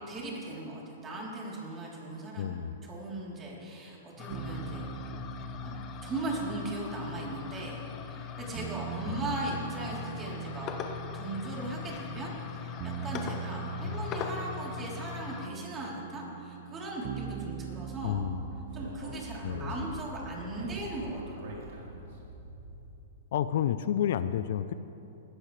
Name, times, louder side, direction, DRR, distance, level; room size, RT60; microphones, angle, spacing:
voice 1, 0.1-2.6 2.8-4.9 5.6-10.7 11.1-18.2 18.7-21.7, right 2 dB, 20° right, -4 dB, 3.5 m, -38 dB
voice 2, 2.3-2.8 9.1-9.2 13.8-14.0 18.0-18.5 19.4-19.8 23.3-24.7, left 10 dB, 65° left, 13 dB, 0.5 m, -30 dB
sound 1, 4.2-15.5, left 9 dB, 30° left, 1.0 m, -40 dB
sound 2, 4.3-21.3, right 12 dB, 40° right, 0.5 m, -43 dB
Speech, 18.0-22.9, right 1 dB, 65° right, 3.8 m, -44 dB
19.5 x 14.0 x 3.3 m, 3.0 s
hypercardioid pair, 135°, 0 cm